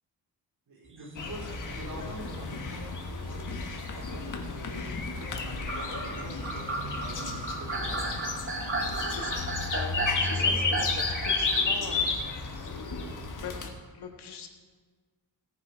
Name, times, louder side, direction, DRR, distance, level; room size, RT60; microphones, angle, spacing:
voice 1, 0.7-8.3 10.1-10.8, right 2 dB, 60° right, -4 dB, 4.1 m, -45 dB
sound 1, 0.9-3.1 3.7-4.8 5.5-11.7, right 3 dB, 30° right, 1.1 m, -35 dB
sound 2, 1.2-13.7, left 4 dB, 50° left, 1.5 m, -32 dB
voice 2, 9.1-12.7 13.4-14.5, left 6 dB, 75° left, 4 dB, 1.5 m, -42 dB
17.5 x 7.2 x 5.0 m, 1.5 s
wide cardioid pair, 140°, 40 cm